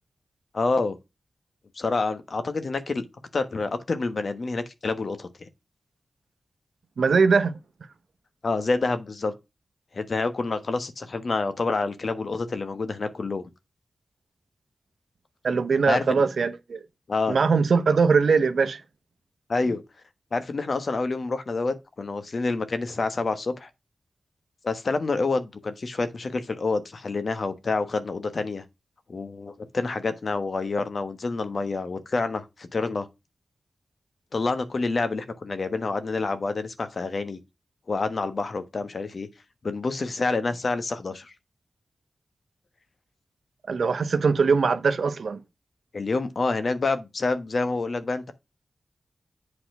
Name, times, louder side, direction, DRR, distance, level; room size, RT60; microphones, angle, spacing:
voice 1, 0.5-1.0 1.7-3.0 3.3-5.3 8.4-9.3 9.9-13.4 15.9-16.2 17.1-17.4 19.5-19.8 20.3-23.7 24.6-28.6 29.1-33.1 34.3-37.4 37.9-39.3 39.6-41.3 45.9-48.3, left 3 dB, 55° left, 1.2 m, -27 dB
voice 2, 7.0-7.6 15.4-16.8 17.3-18.8 43.7-45.4, right 5 dB, 75° right, 0.9 m, -21 dB
8.0 x 4.2 x 6.0 m
cardioid pair, 65°, 0 cm